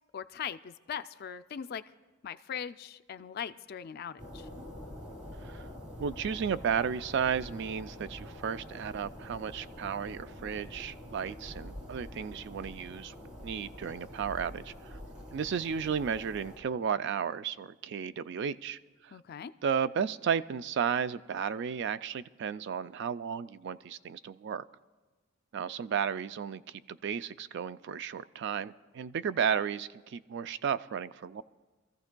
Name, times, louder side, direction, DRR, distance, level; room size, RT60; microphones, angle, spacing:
voice 1, 0.1-1.8 2.2-4.5 19.1-19.5, left 8 dB, 45° left, 12 dB, 0.3 m, -40 dB
sound 1, 4.2-16.6, left 1 dB, 35° right, 2.4 m, -46 dB
voice 2, 6.0-13.1 13.4-15.0 15.3-18.8 19.0-19.1 19.6-24.6 25.5-26.6 26.9-31.4, right 7 dB, 55° right, 14 dB, 0.3 m, -33 dB
25.5 x 14.5 x 2.2 m, 1.3 s
head